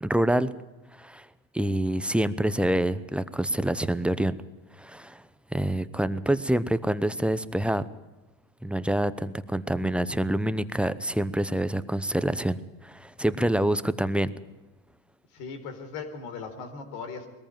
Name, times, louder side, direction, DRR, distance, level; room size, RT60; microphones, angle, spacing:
voice 1, 0.0-0.5 1.0-1.3 1.5-4.4 4.8-5.2 5.5-7.9 8.6-14.3, right 1 dB, 5° right, 14 dB, 0.8 m, -26 dB
voice 2, 15.3-17.3, left 5 dB, 70° left, 6 dB, 4.2 m, -38 dB
20.5 x 14.5 x 9.1 m, 1.2 s
supercardioid pair, 100°, 40 cm